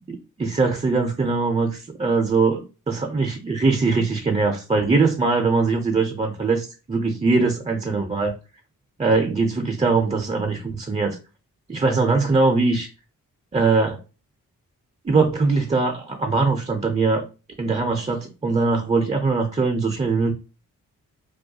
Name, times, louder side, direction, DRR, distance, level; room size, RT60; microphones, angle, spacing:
voice 1, 0.1-8.3 9.0-11.2 11.7-12.9 13.5-14.0 15.0-17.2 17.6-20.3, right 3 dB, 20° right, 3 dB, 0.4 m, -21 dB
2.3 x 2.2 x 2.7 m, 0.32 s
supercardioid pair, 45°, 36 cm